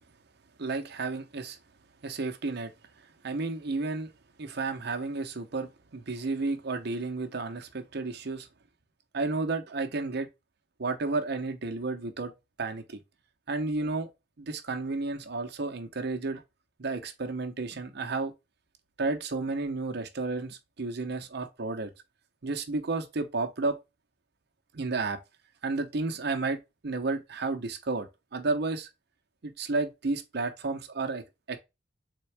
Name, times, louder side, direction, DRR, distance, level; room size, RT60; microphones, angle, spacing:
voice 1, 0.6-1.6 2.0-2.7 3.2-4.1 4.4-8.5 9.1-10.3 10.8-12.3 12.6-13.0 13.5-14.1 14.4-16.4 16.8-18.3 19.0-21.9 22.4-23.8 24.7-25.2 25.6-26.6 26.8-28.9 29.4-31.6, right 3 dB, 60° right, 0.7 m, -32 dB
3.8 x 3.5 x 3.2 m
head